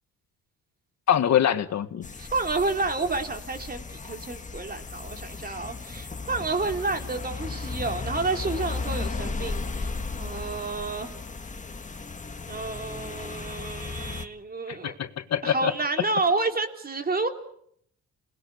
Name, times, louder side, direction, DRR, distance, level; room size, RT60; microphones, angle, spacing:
voice 1, 1.1-2.1 14.7-15.7, left 10 dB, 60° left, 10 dB, 1.7 m, -24 dB
sound 1, 2.0-14.3, left 4 dB, 25° left, 1.8 m, -35 dB
voice 2, 2.2-9.9 10.2-11.2 12.5-15.0 15.4-17.3, right 3 dB, 30° right, 5 dB, 3.4 m, -30 dB
28.5 x 20.0 x 8.3 m, 0.70 s
cardioid pair, 90°, 30 cm